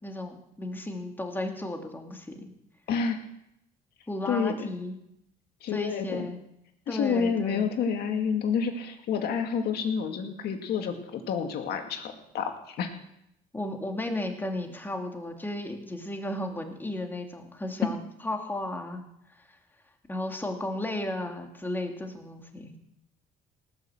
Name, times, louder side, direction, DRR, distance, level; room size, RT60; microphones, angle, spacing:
voice 1, 0.0-2.4 4.1-5.0 5.7-6.4 6.9-7.7 13.5-19.0 20.1-22.8, left 1 dB, 10° left, 3 dB, 2.4 m, -34 dB
voice 2, 4.3-4.7 5.6-6.2 6.9-12.5 12.8-12.9, left 6 dB, 70° left, 5 dB, 2.1 m, -29 dB
18.5 x 6.6 x 7.9 m, 0.79 s
cardioid pair, 110°, 17 cm